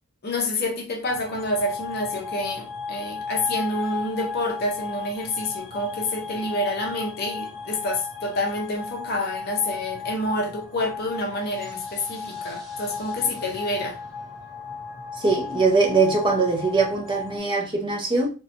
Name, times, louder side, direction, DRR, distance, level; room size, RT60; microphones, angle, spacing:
voice 1, 0.2-14.0, left 1 dB, 45° left, 0.6 m, -28 dB
sound 1, 1.1-17.4, left 5 dB, ahead, 1.3 m, -35 dB
voice 2, 15.2-18.3, right 4 dB, 20° right, 0.5 m, -22 dB
2.7 x 2.2 x 2.6 m
head